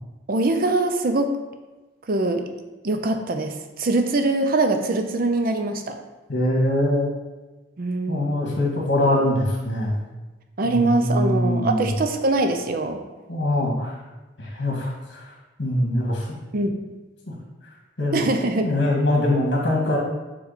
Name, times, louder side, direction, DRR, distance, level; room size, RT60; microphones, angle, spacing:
voice 1, 0.3-1.3 2.1-2.4 2.8-6.0 7.8-8.4 10.6-13.0 16.5-16.8 18.1-18.7, right 2 dB, 50° right, 6 dB, 0.6 m, -23 dB
voice 2, 6.3-7.1 8.1-9.9 10.6-11.9 13.3-14.0 14.4-15.3 15.6-16.4 17.3-17.4 18.0-18.2 18.6-20.0, left 1 dB, 75° left, -3 dB, 1.8 m, -23 dB
7.0 x 3.2 x 4.1 m, 1.1 s
head